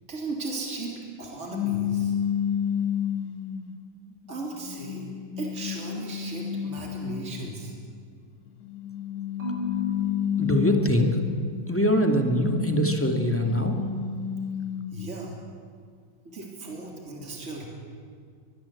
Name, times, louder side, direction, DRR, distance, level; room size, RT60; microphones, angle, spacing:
voice 1, 0.1-2.1 4.3-5.1 5.4-7.7 14.9-15.3 16.2-17.7, right 3 dB, 35° right, -1 dB, 3.9 m, -36 dB
sound 1, 1.5-3.7 4.4-7.5 8.6-11.6 12.0-15.0, left 9 dB, 55° left, 2.0 m, -30 dB
Marimba xylophone / Wood, 9.4-11.6, left 5 dB, 60° right, 8.6 m, -36 dB
voice 2, 10.4-11.2 11.7-13.8, equal, 5° left, 3 dB, 2.1 m, -23 dB
23.0 x 21.5 x 8.5 m, 2.1 s
omnidirectional pair, 2.1 m